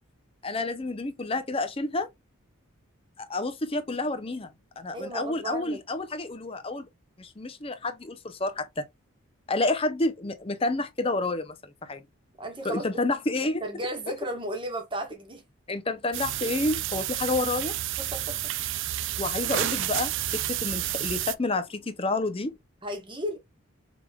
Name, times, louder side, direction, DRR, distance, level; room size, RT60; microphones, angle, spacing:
voice 1, 0.4-2.1 3.2-4.5 4.8-6.9 7.2-8.8 9.5-12.0 12.6-13.6 15.7-17.7 19.2-22.6, left 2 dB, 25° left, 0.6 m, -29 dB
voice 2, 4.9-5.8 12.4-13.0 13.6-15.5 18.0-18.4 22.8-23.4, right 1 dB, 25° right, 1.2 m, -34 dB
sound 1, 16.1-21.3, right 14 dB, 60° right, 0.3 m, -30 dB
4.9 x 3.5 x 2.3 m
head